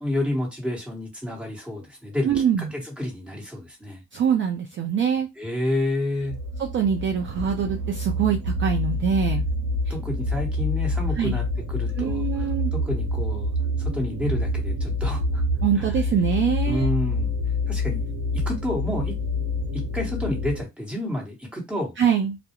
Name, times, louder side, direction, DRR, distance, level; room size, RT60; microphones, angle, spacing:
voice 1, 0.0-2.4 2.7-4.0 5.4-6.4 9.9-13.5 13.8-15.4 15.8-16.0 16.7-17.3 17.7-18.1 18.3-19.1 19.7-22.0, left 1 dB, 5° right, 1.2 m, -29 dB
voice 2, 2.2-2.7 4.1-5.3 6.6-9.4 9.9-10.0 11.2-11.3 12.0-12.7 15.6-16.9 22.0-22.4, right 8 dB, 40° right, 0.4 m, -24 dB
sound 1, 6.2-20.6, left 2 dB, 85° right, 0.9 m, -27 dB
2.3 x 2.1 x 2.9 m
cardioid pair, 90°, 30 cm